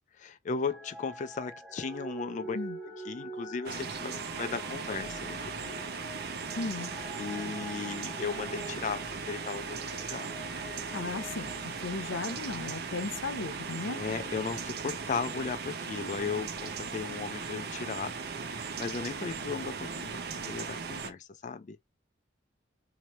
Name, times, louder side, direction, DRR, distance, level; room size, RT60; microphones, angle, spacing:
voice 1, 0.1-2.6 3.0-5.8 7.2-10.3 13.9-18.1 18.5-21.8, left 5 dB, 40° left, 0.4 m, -36 dB
sound 1, 0.6-12.6 13.2-13.3, right 2 dB, ahead, 0.8 m, -46 dB
sound 2, 3.7-21.1, right 5 dB, 55° right, 0.7 m, -38 dB
voice 2, 6.6-6.9 10.9-14.0, left 3 dB, 90° left, 0.7 m, -36 dB
3.1 x 2.7 x 4.2 m
head